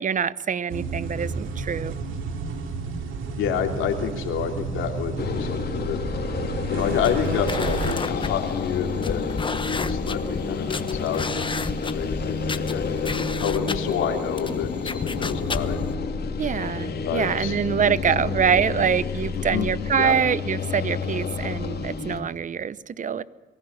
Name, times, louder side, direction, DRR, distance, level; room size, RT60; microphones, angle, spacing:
voice 1, 0.0-1.9 16.4-23.2, right 7 dB, 40° right, 18 dB, 0.8 m, -25 dB
sound 1, 0.7-8.0, right 5 dB, 85° right, 2.5 m, -31 dB
voice 2, 3.3-6.0 6.7-9.2 9.6-15.8 17.0-17.9 18.2-18.3 18.8-18.9 19.3-19.7 20.0-20.1, left 8 dB, 85° left, 3 dB, 3.2 m, -29 dB
sound 2, 5.2-22.2, left 5 dB, 55° left, 2.9 m, -29 dB
sound 3, 6.8-15.9, left 4 dB, 25° left, 1.1 m, -33 dB
23.5 x 15.5 x 7.4 m, 1.3 s
cardioid pair, 90°, 20 cm